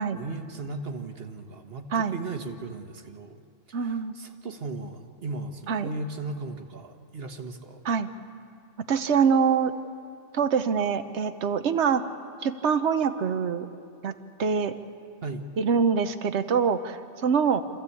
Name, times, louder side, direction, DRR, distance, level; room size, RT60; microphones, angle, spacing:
voice 1, 0.1-3.4 3.7-7.8 15.2-15.4, right 3 dB, 60° right, 6 dB, 1.5 m, -37 dB
voice 2, 3.7-4.1 5.7-5.9 7.9-8.1 8.9-9.7 10.3-12.0 12.4-13.7 14.0-14.7 15.6-17.6, right 6 dB, 75° right, 10 dB, 1.2 m, -24 dB
26.5 x 15.0 x 8.4 m, 2.4 s
omnidirectional pair, 1.2 m